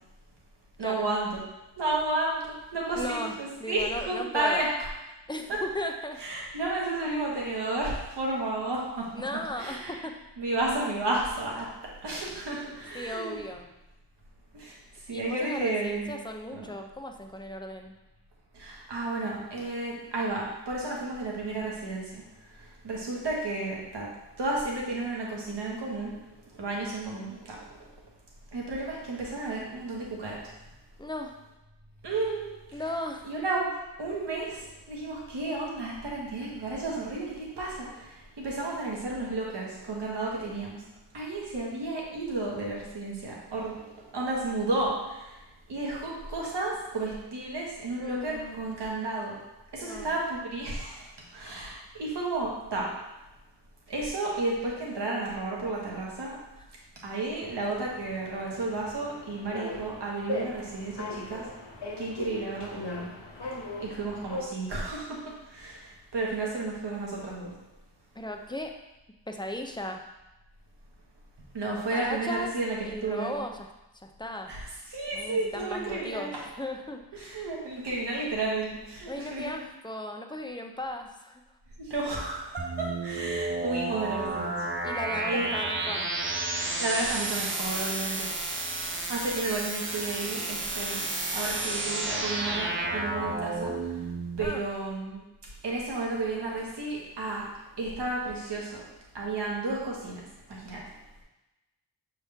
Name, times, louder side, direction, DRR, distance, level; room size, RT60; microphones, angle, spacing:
voice 1, 0.8-1.4 1.8-4.7 5.5-5.6 6.2-9.1 9.6-10.0 10.4-11.7 12.0-13.4 14.5-14.7 15.1-16.1 16.6-16.7 18.5-22.2 22.5-24.1 24.4-26.1 26.5-27.8 28.5-30.4 32.0-32.8 33.3-33.7 34.0-40.8 41.1-45.4 45.7-49.3 49.7-51.0 51.3-52.9 53.9-56.4 57.0-61.5 62.0-63.1 63.8-65.2 65.4-67.5 71.5-73.3 74.5-74.6 74.9-76.4 77.1-79.5 81.8-84.6 85.3-85.5 86.8-88.3 89.1-91.1 91.3-94.0 94.4-95.2 95.6-98.8 99.1-100.2 100.5-100.8, right 2 dB, 70° right, -3 dB, 1.7 m, -32 dB
voice 2, 3.0-3.3 3.6-4.7 5.3-6.2 9.2-10.1 12.9-13.7 15.1-18.0 31.0-31.3 32.7-33.3 48.0-48.6 49.8-50.1 56.6-56.7 68.1-68.7 69.3-70.0 71.9-72.5 72.8-73.7 74.0-74.5 75.1-76.3 76.6-77.3 79.1-81.4 84.8-86.1 94.4-94.6, left 1 dB, 10° left, 3 dB, 0.5 m, -36 dB
sound 1, 57.4-64.4, left 2 dB, 70° left, 1.2 m, -39 dB
sound 2, 82.6-94.4, right 2 dB, 30° right, 0.6 m, -31 dB
6.8 x 4.5 x 3.5 m, 1.0 s
wide cardioid pair, 145°, 43 cm